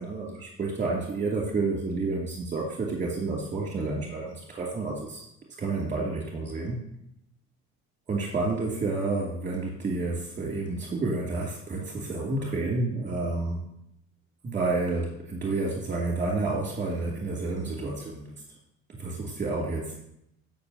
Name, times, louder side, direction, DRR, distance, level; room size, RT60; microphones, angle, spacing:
voice 1, 0.0-5.2 5.6-6.8 8.1-13.6 14.4-18.3 19.0-19.9, right 3 dB, 25° right, -2 dB, 2.6 m, -30 dB
17.0 x 5.8 x 2.8 m, 0.77 s
supercardioid pair, 95°, 30 cm